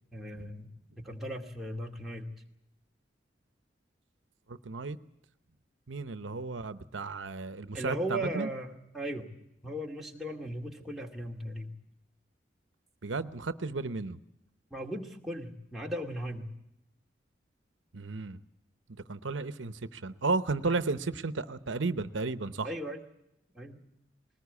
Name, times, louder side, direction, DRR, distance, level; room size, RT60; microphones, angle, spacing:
voice 1, 0.1-0.7 1.0-2.3 7.7-9.3 9.6-11.7 14.7-16.5 22.6-23.0 23.5-23.8, right 1 dB, ahead, -1 dB, 2.3 m, -37 dB
voice 2, 4.5-5.0 5.9-8.5 13.0-14.2 17.9-18.4 19.1-22.7, right 3 dB, 90° right, 12 dB, 0.9 m, -33 dB
21.0 x 19.0 x 8.4 m, 0.83 s
head